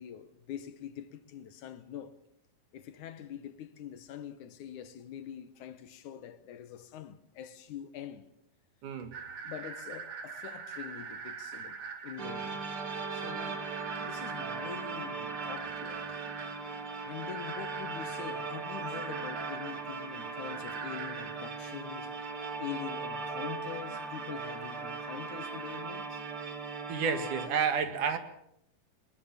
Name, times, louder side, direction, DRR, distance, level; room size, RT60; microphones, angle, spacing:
voice 1, 0.0-2.2 2.7-8.3 9.4-12.6 13.1-13.7 14.1-16.2 17.1-22.3 22.6-26.2, left 10 dB, 70° left, 2.5 m, -44 dB
voice 2, 8.8-9.1 26.9-28.2, right 6 dB, 70° right, 3.3 m, -30 dB
sound 1, 9.1-25.8, right 6 dB, 90° right, 4.6 m, -46 dB
sound 2, 12.2-27.5, right 4 dB, 40° right, 3.2 m, -38 dB
22.0 x 21.5 x 7.2 m
omnidirectional pair, 3.8 m